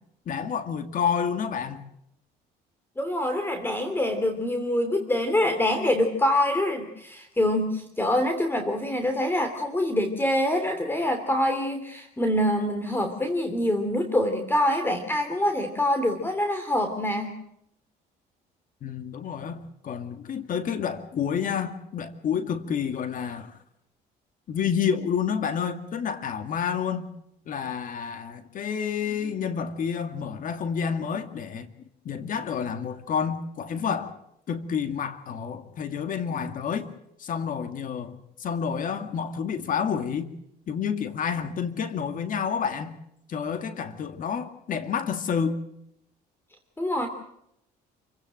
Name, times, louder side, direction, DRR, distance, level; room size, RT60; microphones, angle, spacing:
voice 1, 0.3-1.8 18.8-23.6 24.5-27.1 27.5-31.7 32.1-34.2 34.5-36.9 37.2-40.3 40.7-43.0 43.3-45.6, left 7 dB, 55° left, 2.1 m, -29 dB
voice 2, 3.0-17.4 46.8-47.1, left 1 dB, 15° left, 2.9 m, -25 dB
29.0 x 16.5 x 7.7 m
cardioid pair, 110°, 17 cm